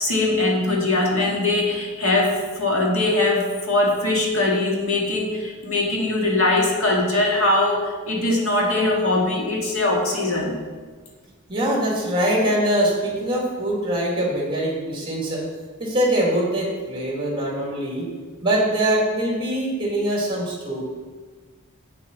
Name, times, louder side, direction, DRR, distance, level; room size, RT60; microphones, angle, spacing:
voice 1, 0.0-10.6, left 2 dB, 65° left, -1 dB, 2.0 m, -21 dB
voice 2, 11.5-15.4 15.8-18.1 18.4-20.8, right 1 dB, 25° right, -3 dB, 2.5 m, -23 dB
8.2 x 7.1 x 5.5 m, 1.4 s
head